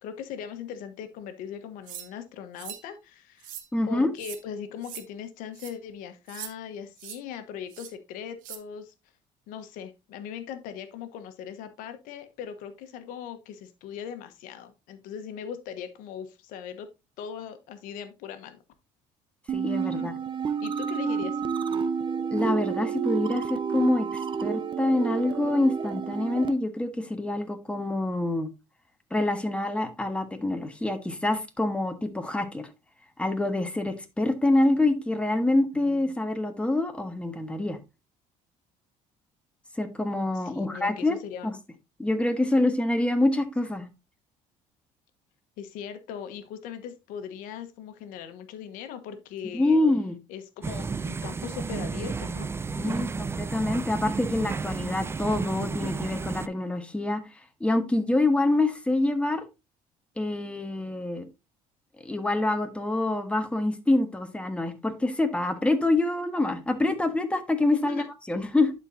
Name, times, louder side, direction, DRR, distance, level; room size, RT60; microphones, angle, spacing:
voice 1, 0.0-3.5 3.9-8.9 9.5-16.9 17.2-18.6 19.9-20.2 20.6-21.4 35.7-36.0 40.3-41.5 45.6-49.8 50.3-52.5 52.8-53.1 67.8-68.1, left 8 dB, 80° left, 1.2 m, -39 dB
sound 1, 1.9-2.1 2.6-2.8 3.4-3.7 4.2-4.4 4.8-5.0 5.5-5.7 6.3-6.5 7.0-7.2 7.7-7.9 8.4-8.6, right 11 dB, 75° right, 1.1 m, -41 dB
voice 2, 3.7-4.1 19.5-20.1 22.3-28.5 29.1-32.7 33.2-37.8 39.8-41.2 41.4-41.5 42.0-43.9 49.5-50.2 52.7-57.2 57.6-59.4 60.2-61.2 62.0-68.7, left 2 dB, 10° left, 1.4 m, -26 dB
sound 2, 19.5-26.5, right 7 dB, 35° right, 0.7 m, -30 dB
sound 3, 50.6-56.5, right 4 dB, 20° right, 0.3 m, -32 dB
11.5 x 4.4 x 2.7 m
cardioid pair, 95°, 14 cm